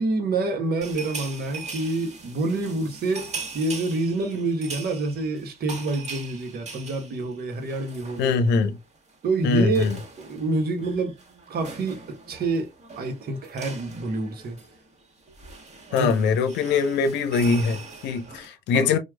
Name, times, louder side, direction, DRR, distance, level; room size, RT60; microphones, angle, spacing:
voice 1, 0.0-8.4 9.2-9.9 10.2-11.2 11.5-14.6 15.9-16.1 18.4-18.5 18.7-18.9, right 3 dB, 55° right, 1.1 m, -27 dB
sound 1, 0.8-8.7 8.9-9.1 9.4-18.5, right 4 dB, 35° right, 1.4 m, -41 dB
voice 2, 8.2-8.8 9.4-10.0 15.9-19.0, left 4 dB, 65° left, 0.7 m, -22 dB
4.5 x 2.3 x 2.2 m
figure-of-eight pair, 40°, 19 cm